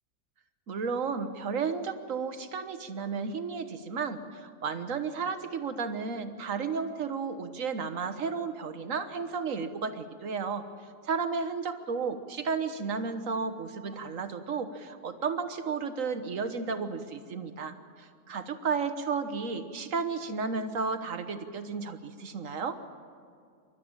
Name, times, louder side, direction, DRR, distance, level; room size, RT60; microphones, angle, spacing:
voice 1, 0.7-10.6 11.0-22.8, right 5 dB, 55° right, 9 dB, 1.5 m, -33 dB
27.5 x 13.0 x 8.9 m, 2.3 s
omnidirectional pair, 1.7 m